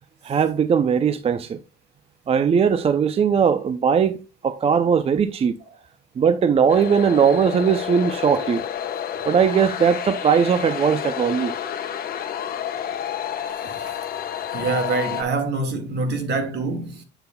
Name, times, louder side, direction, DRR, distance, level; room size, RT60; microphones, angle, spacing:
voice 1, 0.2-1.6 2.3-5.6 6.2-8.6 9.2-11.5, right 7 dB, 30° right, 0.4 m, -19 dB
sound 1, 6.7-15.2, left 9 dB, 45° left, 1.0 m, -30 dB
voice 2, 14.5-17.0, right 3 dB, 60° right, 1.7 m, -25 dB
8.0 x 6.8 x 2.2 m
supercardioid pair, 90°, 20 cm